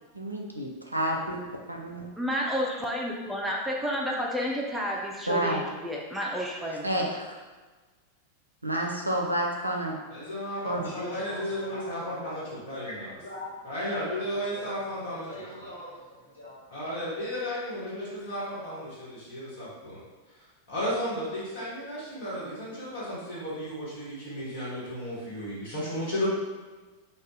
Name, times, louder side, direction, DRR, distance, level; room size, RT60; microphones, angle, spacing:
voice 1, 0.2-1.4 1.7-2.1 5.3-5.6 6.8-7.3 8.6-10.0 10.6-10.9, right 1 dB, 85° right, 0 dB, 0.4 m, -29 dB
voice 2, 2.2-6.8, equal, 5° right, -3 dB, 0.4 m, -30 dB
voice 3, 10.1-13.1 13.6-15.7 16.7-20.0 20.7-26.3, equal, 55° left, -8 dB, 1.4 m, -34 dB
voice 4, 10.8-12.5 12.8-16.7, left 1 dB, 75° left, -8 dB, 1.2 m, -43 dB
2.5 x 2.3 x 3.7 m, 1.3 s
figure-of-eight pair, 90°, 0 cm